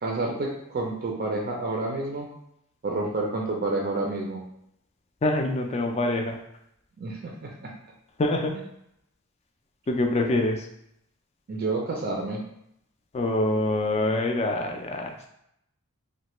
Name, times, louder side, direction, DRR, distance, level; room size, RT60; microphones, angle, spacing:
voice 1, 0.0-2.3 2.8-4.4 7.0-7.7 11.5-12.4, right 2 dB, 45° right, 0 dB, 0.4 m, -29 dB
voice 2, 5.2-6.4 8.2-8.5 9.9-10.7 13.1-15.3, left 2 dB, 30° left, 3 dB, 0.3 m, -25 dB
3.1 x 2.2 x 3.0 m, 0.76 s
head